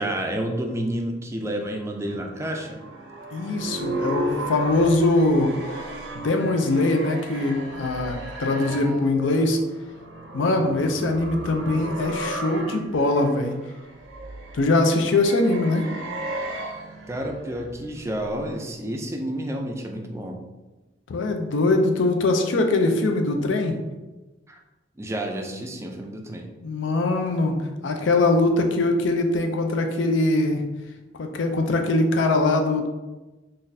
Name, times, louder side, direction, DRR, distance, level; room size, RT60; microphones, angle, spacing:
voice 1, 0.0-2.8 17.1-20.4 24.5-24.6 25.0-26.5, right 1 dB, 15° right, 2 dB, 0.3 m, -30 dB
sound 1, 1.8-18.7, right 1 dB, 70° right, 0.5 m, -35 dB
voice 2, 3.3-5.5 6.1-9.6 10.3-13.5 14.5-15.9 21.1-23.8 26.6-30.7 31.2-32.9, left 2 dB, 80° left, 4 dB, 0.4 m, -22 dB
3.8 x 2.5 x 2.6 m, 1.1 s
head